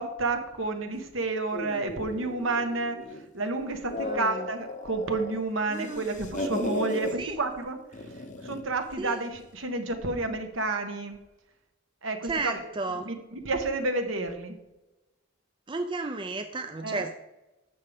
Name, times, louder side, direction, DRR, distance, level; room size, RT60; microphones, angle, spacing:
voice 1, 0.0-7.8 8.4-11.2 12.0-12.5 13.1-14.6 16.8-17.1, right 3 dB, 65° right, 6 dB, 1.4 m, -30 dB
sound 1, 1.5-3.3 3.7-5.4 5.7-7.1 7.9-8.7, left 2 dB, 35° left, 0.8 m, -36 dB
voice 2, 4.0-4.5 5.7-6.1 7.2-7.4 9.0-9.2 12.2-13.1 15.7-17.1, right 3 dB, 25° right, 7 dB, 0.5 m, -33 dB
12.0 x 8.0 x 3.6 m, 0.99 s
head